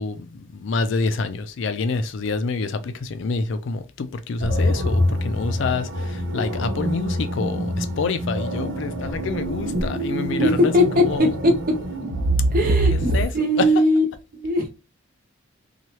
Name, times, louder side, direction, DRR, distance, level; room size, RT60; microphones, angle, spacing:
voice 1, 0.0-11.3 12.9-13.3 13.6-13.7, left 4 dB, 60° left, 0.4 m, -27 dB
sound 1, 4.4-13.2, right 1 dB, 80° right, 0.9 m, -25 dB
voice 2, 10.4-11.5 12.5-14.1 14.3-14.7, left 1 dB, 40° right, 0.7 m, -19 dB
3.0 x 2.3 x 2.8 m
head